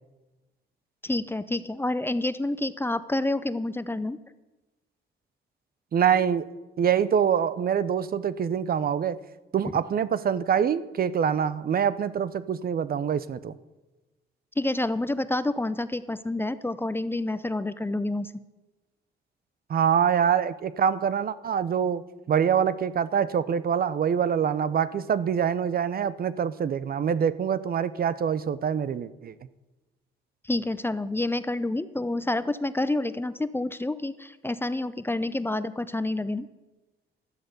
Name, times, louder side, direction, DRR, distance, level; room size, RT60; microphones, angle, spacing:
voice 1, 1.0-4.2 14.6-18.3 30.4-36.5, left 2 dB, 10° left, 13 dB, 0.6 m, -28 dB
voice 2, 5.9-6.5 6.8-9.2 9.5-13.5 19.7-29.3, right 8 dB, 50° right, 16 dB, 0.6 m, -25 dB
12.5 x 11.5 x 6.7 m, 1.1 s
cardioid pair, 90°, 20 cm